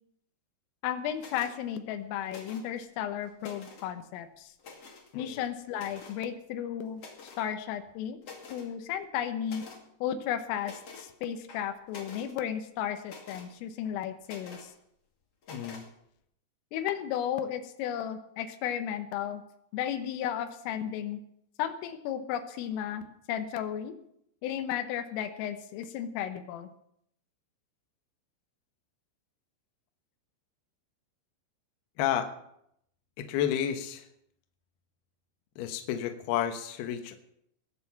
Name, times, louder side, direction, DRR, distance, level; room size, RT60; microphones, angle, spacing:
voice 1, 0.8-4.5 5.2-7.0 7.4-8.2 8.5-9.6 10.0-14.7 16.7-19.4 19.7-21.2 21.6-24.0 24.4-26.7, left 9 dB, 85° left, 9 dB, 3.7 m, -34 dB
sound 1, 1.2-1.5 2.3-2.8 3.2-3.9 4.6-5.1 5.7-6.2 7.0-7.5 7.9-8.0 8.2-8.7 9.4-9.8 10.6-11.1 11.5-12.3 13.0-13.5 14.2-14.7 15.4-15.9, left 4 dB, 45° left, 2.3 m, -47 dB
voice 2, 15.5-15.8 32.0-32.3 33.2-34.1 35.6-37.2, left 10 dB, 65° left, 6 dB, 2.8 m, -31 dB
19.0 x 7.6 x 7.3 m, 0.74 s
omnidirectional pair, 5.7 m